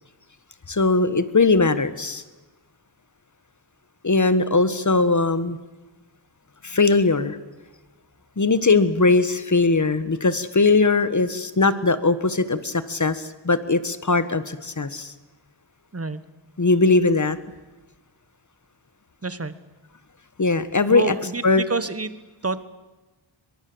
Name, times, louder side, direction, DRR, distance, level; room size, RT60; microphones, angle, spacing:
voice 1, 0.7-2.2 4.0-5.6 6.6-7.4 8.4-15.1 16.6-17.4 20.4-21.1 21.4-21.6, left 3 dB, 35° left, 14 dB, 1.5 m, -20 dB
voice 2, 19.2-19.6 20.9-22.1 22.4-22.6, right 3 dB, 30° right, 15 dB, 1.4 m, -27 dB
22.5 x 22.5 x 8.0 m, 1.1 s
wide cardioid pair, 80°, 49 cm